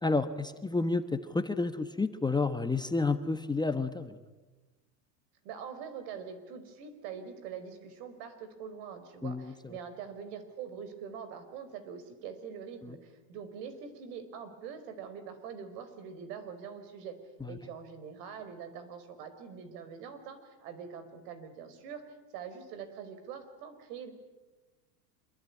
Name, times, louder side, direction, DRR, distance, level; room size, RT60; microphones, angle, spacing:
voice 1, 0.0-4.2 9.2-9.5 17.4-17.5, left 3 dB, 10° left, 8 dB, 1.2 m, -30 dB
voice 2, 5.4-17.2 17.5-24.1, right 7 dB, 70° right, 11 dB, 5.2 m, -44 dB
26.0 x 22.5 x 9.8 m, 1.2 s
supercardioid pair, 115°, 50 cm